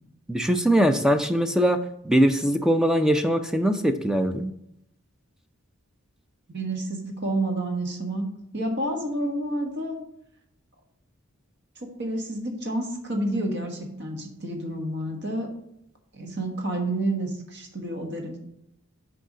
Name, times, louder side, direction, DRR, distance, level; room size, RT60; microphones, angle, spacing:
voice 1, 0.3-1.8 2.0-4.5, equal, 5° right, 8 dB, 0.4 m, -21 dB
voice 2, 6.5-8.3 8.5-10.0 11.8-15.5 16.1-18.4, right 1 dB, 55° right, 3 dB, 1.3 m, -29 dB
6.5 x 4.7 x 6.2 m, 0.79 s
head